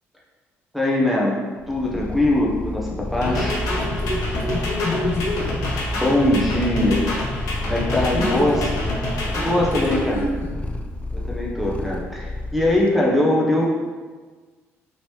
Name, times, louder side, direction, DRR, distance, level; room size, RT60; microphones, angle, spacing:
voice 1, 0.7-1.4 1.7-3.5 5.9-7.1 7.6-8.6 9.2-10.2 11.1-13.6, left 1 dB, ahead, -3 dB, 0.7 m, -21 dB
Purr, 1.6-12.9, left 2 dB, 20° left, 0.3 m, -30 dB
sound 1, 3.2-10.0, left 1 dB, 75° left, 0.7 m, -28 dB
voice 2, 3.2-5.6 8.1-8.7 9.5-10.5, left 1 dB, 45° left, -3 dB, 0.9 m, -27 dB
3.0 x 3.0 x 2.9 m, 1.4 s
supercardioid pair, 65°, 6 cm